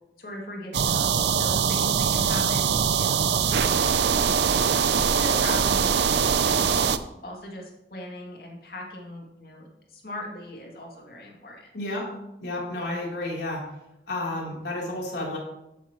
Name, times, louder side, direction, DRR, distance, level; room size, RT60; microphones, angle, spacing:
voice 1, 0.2-4.8 5.2-6.8 7.2-11.7, left 1 dB, 55° left, -1 dB, 2.5 m, -39 dB
sound 1, 0.7-7.0, right 7 dB, 80° right, 0.5 m, -22 dB
voice 2, 11.7-12.0 12.4-13.6 14.1-15.4, left 1 dB, 75° left, -3 dB, 3.4 m, -31 dB
12.5 x 8.5 x 3.1 m, 0.88 s
head